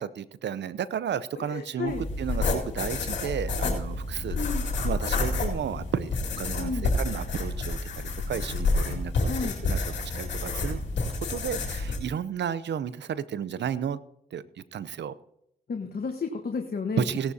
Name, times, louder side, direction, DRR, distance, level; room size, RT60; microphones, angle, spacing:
voice 1, 0.0-4.4 4.8-9.3 9.6-10.8 11.3-14.0 14.3-14.4 14.7-15.1 17.0-17.3, right 8 dB, 75° right, 16 dB, 0.6 m, -32 dB
voice 2, 1.3-2.0 4.3-4.6 6.6-6.9 9.2-9.6 15.7-17.0, left 5 dB, 60° left, 3 dB, 1.3 m, -32 dB
sound 1, 1.9-12.0, left 3 dB, 85° left, 2.2 m, -29 dB
17.0 x 11.5 x 2.8 m, 0.75 s
supercardioid pair, 40°, 18 cm